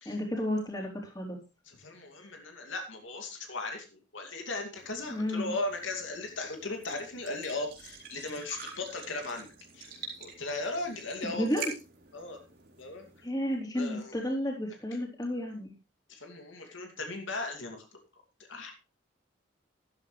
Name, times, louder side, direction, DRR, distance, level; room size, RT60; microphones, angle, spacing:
voice 1, 0.1-1.4 5.1-5.5 11.2-11.7 13.2-15.7 16.6-16.8, equal, 20° left, 0 dB, 3.9 m, -32 dB
voice 2, 1.7-9.5 9.7-9.9 10.2-11.6 12.1-12.4 12.8-13.1 13.7-14.3 16.1-18.0 18.5-18.7, left 2 dB, 75° left, 3 dB, 2.5 m, -37 dB
sound 1, 4.7-13.3, right 5 dB, 50° right, 3.9 m, -47 dB
13.5 x 11.5 x 3.2 m, 0.29 s
head